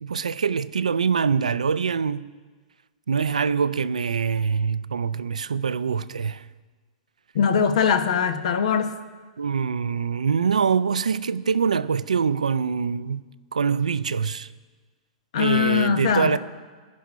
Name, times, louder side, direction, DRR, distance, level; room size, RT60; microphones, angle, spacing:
voice 1, 0.0-2.3 3.1-6.5 9.4-13.2 13.5-14.5 15.3-16.4, right 6 dB, 85° right, 0.4 m, -24 dB
voice 2, 7.3-8.9 15.3-16.4, left 7 dB, 65° left, 1.1 m, -21 dB
16.0 x 5.5 x 9.6 m
hypercardioid pair, 105°, 4 cm